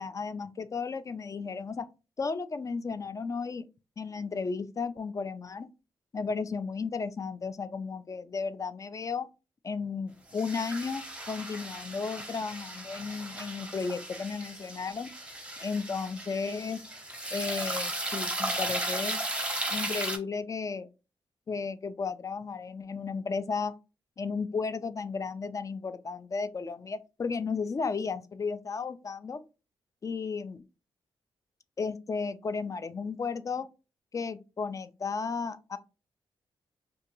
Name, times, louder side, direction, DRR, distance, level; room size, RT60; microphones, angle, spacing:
voice 1, 0.0-1.9 2.2-3.6 4.0-5.7 6.1-9.3 9.6-15.1 15.6-16.8 17.3-19.2 19.7-20.9 21.5-23.7 24.2-29.4 30.0-30.6 31.8-33.7 34.1-35.8, left 5 dB, 35° left, 0.3 m, -34 dB
sound 1, 10.3-20.2, right 1 dB, 10° right, 0.7 m, -36 dB
2.4 x 2.2 x 2.9 m
cardioid pair, 65°, 10 cm